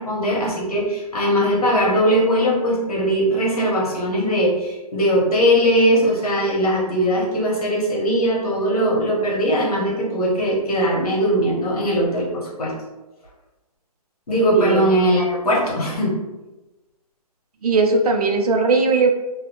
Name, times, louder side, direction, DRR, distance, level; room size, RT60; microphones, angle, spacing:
voice 1, 0.0-12.7 14.3-16.2, equal, 65° left, -4 dB, 1.3 m, -20 dB
voice 2, 14.5-14.9 17.6-19.1, right 3 dB, 70° right, 3 dB, 0.5 m, -18 dB
2.4 x 2.3 x 2.9 m, 1.1 s
hypercardioid pair, 165°, 20 cm